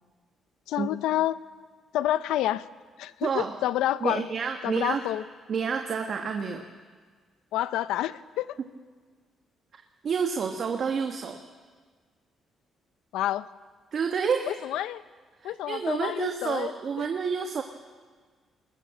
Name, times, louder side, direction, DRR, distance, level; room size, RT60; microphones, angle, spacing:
voice 1, 0.7-1.4 1.9-2.7 3.0-4.3 4.6-5.2 7.5-8.6 13.1-13.5 14.5-15.0 15.4-16.7 17.0-17.1, left 13 dB, 90° left, 16 dB, 0.6 m, -28 dB
voice 2, 3.2-3.5 4.0-5.0 5.5-6.6 10.0-11.4 13.9-14.6 15.4-17.6, right 6 dB, 55° right, 4 dB, 1.5 m, -29 dB
21.5 x 20.0 x 7.5 m, 1.5 s
cardioid pair, 90°, 0 cm